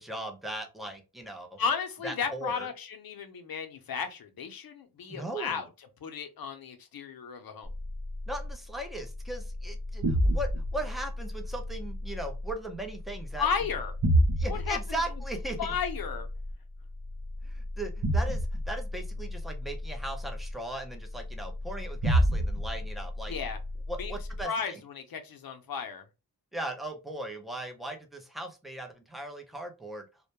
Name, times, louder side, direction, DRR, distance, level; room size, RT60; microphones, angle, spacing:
voice 1, 0.0-1.6 2.0-2.7 5.1-5.6 8.3-13.5 14.4-15.8 17.4-23.3 23.9-24.8 26.5-30.1, right 1 dB, ahead, 0.5 m, -38 dB
voice 2, 1.6-5.7 6.0-7.7 13.4-13.9 14.5-14.8 15.6-16.3 23.3-23.6 24.0-26.1, left 6 dB, 70° left, 0.6 m, -34 dB
sound 1, 7.6-24.4, equal, 55° right, 0.6 m, -31 dB
2.1 x 2.1 x 2.8 m
wide cardioid pair, 80°, 37 cm